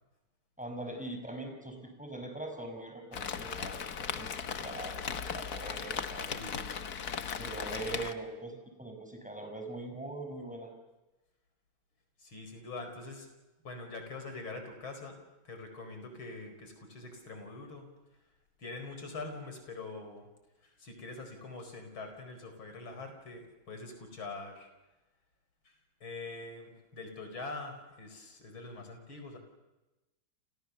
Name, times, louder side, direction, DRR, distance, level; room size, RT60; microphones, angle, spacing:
voice 1, 0.6-4.3 4.6-6.7 7.4-10.7, right 2 dB, 5° right, 4 dB, 5.6 m, -42 dB
Rain, 3.1-8.1, left 7 dB, 50° left, 1.6 m, -37 dB
voice 2, 6.2-6.7 12.2-13.3 13.6-15.2 15.5-17.9 18.6-20.3 20.6-24.7 25.7-25.8 26.0-29.4, left 3 dB, 70° left, 6 dB, 5.4 m, -44 dB
29.5 x 28.5 x 7.0 m, 1.0 s
omnidirectional pair, 2.3 m